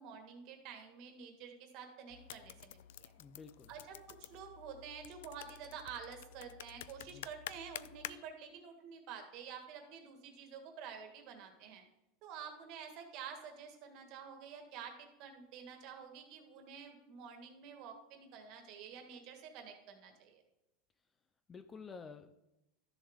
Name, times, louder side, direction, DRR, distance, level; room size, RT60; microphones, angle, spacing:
voice 1, 0.0-3.1 3.7-11.8 12.2-20.4, right 7 dB, 45° right, 5 dB, 1.7 m, -49 dB
sound 1, 2.1-8.2, left 12 dB, 90° left, 0.3 m, -50 dB
voice 2, 3.2-3.7 7.1-7.3 21.5-22.3, left 5 dB, 15° left, 10 dB, 0.4 m, -51 dB
12.5 x 7.0 x 3.6 m, 0.91 s
supercardioid pair, 160°, 0 cm